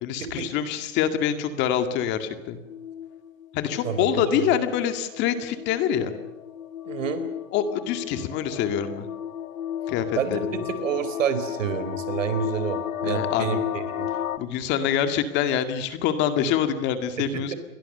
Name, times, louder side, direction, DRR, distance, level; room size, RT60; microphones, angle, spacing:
voice 1, 0.0-2.6 3.5-6.1 7.5-9.1 9.9-10.4 13.0-13.6 14.4-17.5, left 9 dB, 25° left, 9 dB, 2.1 m, -25 dB
sound 1, 2.4-14.4, left 10 dB, 85° left, 1.9 m, -34 dB
voice 2, 3.8-4.4 6.8-7.3 10.1-14.1 17.2-17.6, right 7 dB, 70° right, 11 dB, 4.3 m, -29 dB
29.0 x 22.0 x 6.8 m, 0.99 s
hypercardioid pair, 150°, 40 cm